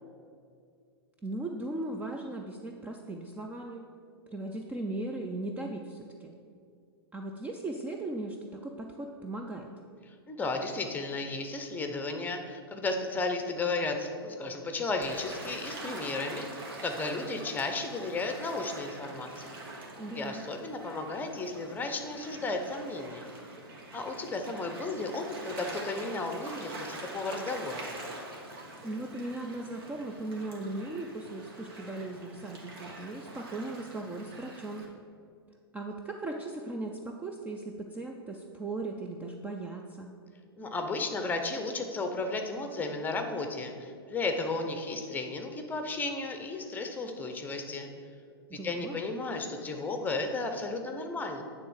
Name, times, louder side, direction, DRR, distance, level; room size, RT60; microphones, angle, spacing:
voice 1, 1.2-3.9 4.3-6.4 7.1-9.7 20.0-20.5 28.8-34.8 35.7-40.1 48.5-49.0, right 2 dB, 10° right, 2 dB, 0.5 m, -38 dB
voice 2, 10.3-16.5 16.8-19.6 20.1-23.3 23.9-27.8 40.6-47.9 48.5-51.4, left 3 dB, 15° left, 5 dB, 0.9 m, -34 dB
Gull seagull / Waves surf, 15.0-34.8, right 2 dB, 60° right, 1.8 m, -44 dB
9.5 x 3.6 x 6.3 m, 2.3 s
hypercardioid pair, 110°, 13 cm